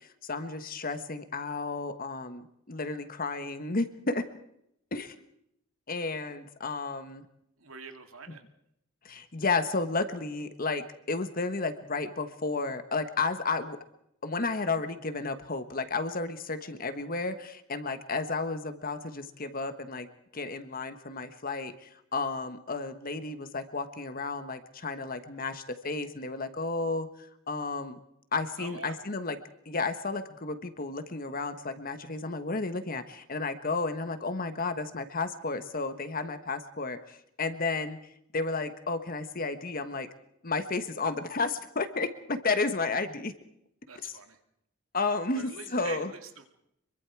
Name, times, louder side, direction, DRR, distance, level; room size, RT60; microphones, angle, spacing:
voice 1, 0.0-4.3 4.9-5.1 5.9-7.3 8.3-8.4 9.0-13.8 14.2-20.1 20.3-28.0 28.3-29.4 29.6-38.0 38.3-40.1 40.4-43.3 44.9-46.1, left 3 dB, 45° left, 10 dB, 1.4 m, -32 dB
voice 2, 7.6-8.4 28.6-29.0 43.9-44.4 45.3-46.5, right 4 dB, 80° right, 6 dB, 2.5 m, -44 dB
25.5 x 23.5 x 4.8 m, 0.78 s
head